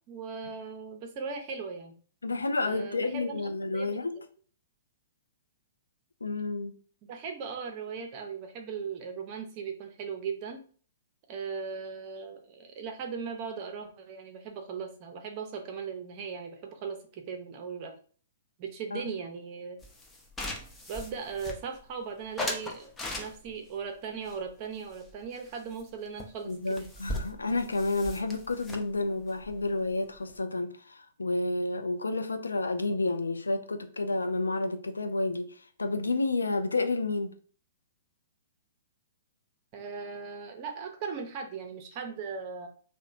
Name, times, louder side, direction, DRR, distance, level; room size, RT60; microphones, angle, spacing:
voice 1, 0.1-1.9 2.6-3.4 3.7-4.0 7.1-10.6 11.3-17.9 18.6-19.8 20.9-26.5 26.8-26.9 39.7-42.7, right 5 dB, 40° right, 0.5 m, -38 dB
voice 2, 2.2-4.2 6.2-6.8 18.9-19.1 26.4-37.3, left 2 dB, 80° left, 0.3 m, -30 dB
sound 1, 19.8-21.9 22.4-23.7 24.2-25.5 25.8-25.9 26.2-26.3 26.5-30.4, left 1 dB, 15° left, 0.5 m, -39 dB
2.8 x 2.1 x 2.5 m
figure-of-eight pair, 115°, 0 cm